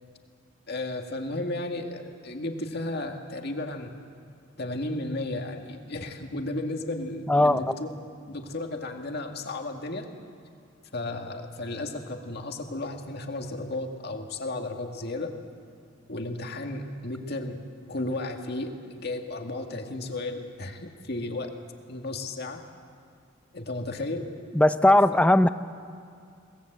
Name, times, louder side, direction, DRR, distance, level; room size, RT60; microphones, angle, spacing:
voice 1, 0.7-3.9 4.6-7.9 8.3-10.1 10.9-15.3 16.1-17.6 17.9-21.5 21.9-22.6 23.5-24.3, left 2 dB, 55° left, 4 dB, 1.9 m, -34 dB
voice 2, 7.3-7.7 24.5-25.5, left 1 dB, 5° left, 12 dB, 0.5 m, -19 dB
23.0 x 19.0 x 7.9 m, 2.4 s
head